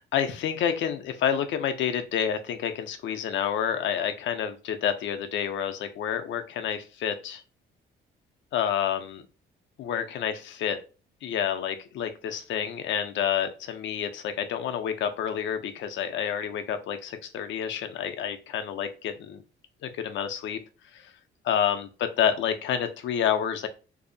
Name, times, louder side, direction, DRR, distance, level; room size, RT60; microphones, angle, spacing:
voice 1, 0.0-7.4 8.5-9.2 9.8-10.8 11.2-19.4 19.8-20.6 20.9-21.1 21.4-21.9 22.2-23.7, left 8 dB, 70° left, 7 dB, 0.5 m, -29 dB
2.6 x 2.0 x 2.6 m, 0.33 s
cardioid pair, 90°, 20 cm